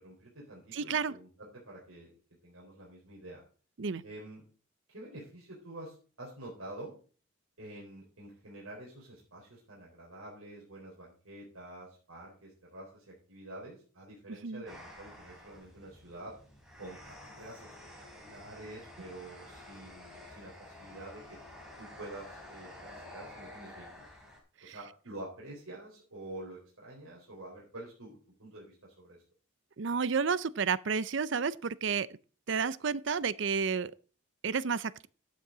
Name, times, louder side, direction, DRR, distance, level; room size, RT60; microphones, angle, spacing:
voice 1, 0.0-2.1 2.4-3.4 4.0-4.4 4.9-6.9 7.6-16.3 16.8-17.7 18.2-21.4 21.8-24.0 24.6-29.2, right 1 dB, 90° right, 4.1 m, -48 dB
voice 2, 0.7-1.1 3.8-4.0 14.4-14.6 24.6-24.8 29.8-32.1 32.5-33.9 34.4-35.1, right 5 dB, 60° right, 0.5 m, -31 dB
sound 1, 14.7-24.4, left 1 dB, ahead, 3.7 m, -50 dB
12.0 x 8.4 x 3.9 m
head